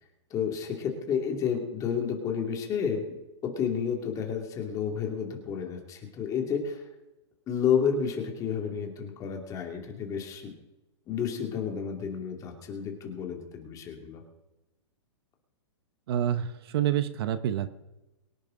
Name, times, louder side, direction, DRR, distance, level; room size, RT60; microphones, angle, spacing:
voice 1, 0.3-6.8 7.5-10.5 11.1-14.2, left 7 dB, 20° left, 2 dB, 2.6 m, -31 dB
voice 2, 16.1-17.7, right 10 dB, 55° right, 12 dB, 0.9 m, -27 dB
23.0 x 10.5 x 3.8 m, 1.0 s
hypercardioid pair, 150°, 16 cm